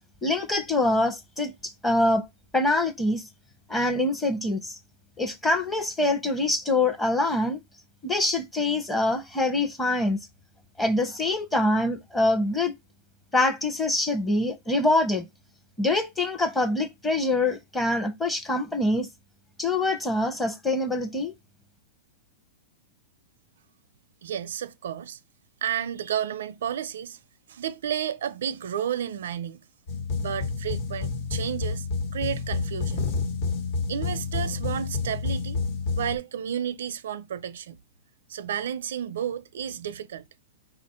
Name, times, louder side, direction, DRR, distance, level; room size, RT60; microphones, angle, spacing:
voice 1, 0.2-2.3 2.5-3.3 3.7-4.8 5.2-7.6 8.0-10.2 10.8-12.7 13.3-15.3 15.8-19.1 19.6-21.3, left 2 dB, 10° left, 0.8 m, -25 dB
voice 2, 24.2-25.2 25.6-27.2 27.5-29.6 30.2-31.9 32.1-33.1 33.9-35.6 36.0-37.8 38.3-40.2, right 9 dB, 80° right, 0.5 m, -31 dB
sound 1, 29.9-36.2, left 4 dB, 55° left, 1.3 m, -29 dB
5.0 x 2.5 x 4.2 m
supercardioid pair, 155°, 0 cm